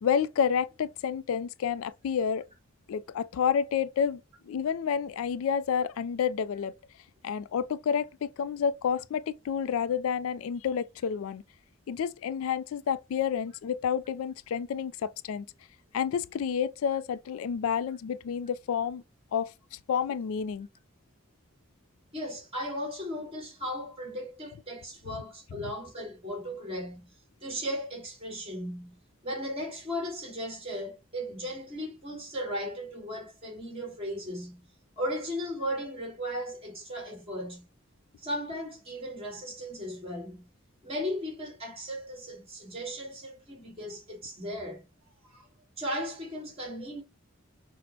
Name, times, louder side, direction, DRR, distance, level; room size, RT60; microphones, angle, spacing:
voice 1, 0.0-2.5 2.9-4.2 4.5-6.7 7.2-11.4 11.9-15.4 15.9-19.0 19.3-19.5 19.9-20.7 25.6-25.7, left 7 dB, 85° left, 0.3 m, -29 dB
voice 2, 22.1-27.1 27.4-29.0 29.2-34.6 35.0-37.7 38.2-40.5 40.8-44.9 45.2-45.5 45.8-47.0, equal, 25° right, 1.9 m, -36 dB
6.0 x 2.1 x 2.7 m
head